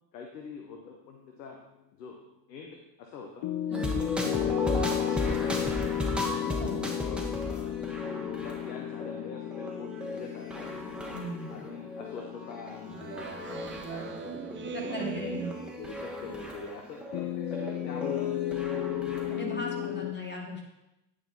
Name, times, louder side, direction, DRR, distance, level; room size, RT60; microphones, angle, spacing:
voice 1, 0.1-1.6 1.9-2.2 2.5-3.5 3.9-4.8 5.1-6.0 6.4-11.1 11.5-13.3 13.6-18.6 19.2-19.4 19.8-20.1, left 5 dB, 85° left, 2 dB, 0.8 m, -44 dB
sound 1, 3.4-15.8 17.1-20.1, left 12 dB, 50° left, 0.7 m, -34 dB
sound 2, 3.7-19.4, left 1 dB, ahead, 1.6 m, -36 dB
voice 2, 11.1-11.6 14.7-15.6 19.3-20.7, equal, 20° left, -2 dB, 2.5 m, -37 dB
Speech synthesizer, 12.9-16.4, right 7 dB, 25° right, 0.5 m, -40 dB
9.2 x 4.9 x 4.1 m, 0.92 s
hypercardioid pair, 50°, 48 cm